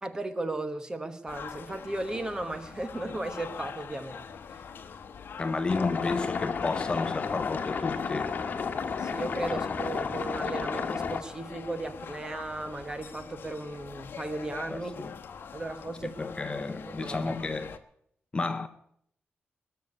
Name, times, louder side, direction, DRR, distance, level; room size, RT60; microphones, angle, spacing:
voice 1, 0.0-4.2 4.5-4.6 9.0-14.9 15.5-16.1 16.9-17.3, right 2 dB, 20° right, 1.2 m, -36 dB
sound 1, 1.3-17.8, left 6 dB, 60° left, 1.2 m, -44 dB
voice 2, 5.4-8.4 9.5-9.6 14.7-15.1 16.0-17.8 18.3-18.7, left 3 dB, 25° left, 0.8 m, -32 dB
sound 2, 5.7-11.2, left 5 dB, 45° left, 1.4 m, -32 dB
20.5 x 6.9 x 9.6 m
wide cardioid pair, 180°, 4 cm